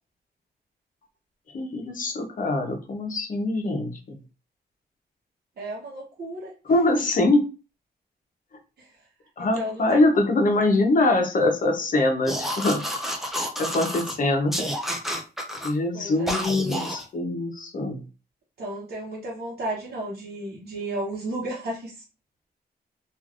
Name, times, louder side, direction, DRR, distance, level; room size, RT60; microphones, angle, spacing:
voice 1, 1.5-4.2 6.7-7.4 9.4-12.8 13.6-14.7 15.6-18.0, left 2 dB, 55° left, 3 dB, 0.8 m, -23 dB
voice 2, 5.6-6.5 8.8-8.9 9.4-10.2 15.9-16.4 18.6-22.0, right 1 dB, 70° right, -5 dB, 0.9 m, -33 dB
sound 1, 12.3-14.2 14.5-15.7 16.3-17.1, equal, ahead, 0.6 m, -29 dB
3.2 x 2.4 x 2.4 m, 0.32 s
cardioid pair, 100°, 17 cm